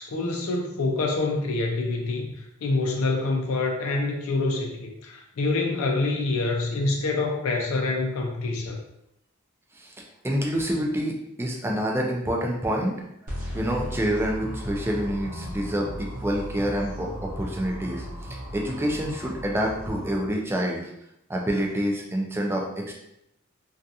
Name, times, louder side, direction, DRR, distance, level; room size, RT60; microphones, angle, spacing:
voice 1, 0.0-2.3 2.6-8.8, left 3 dB, 75° left, 1 dB, 0.4 m, -26 dB
voice 2, 10.2-13.0 13.5-20.9 21.3-22.9, equal, 10° right, 0 dB, 0.4 m, -27 dB
sound 1, 13.3-20.1, equal, 40° right, 0.8 m, -36 dB
2.4 x 2.3 x 2.7 m, 0.80 s
head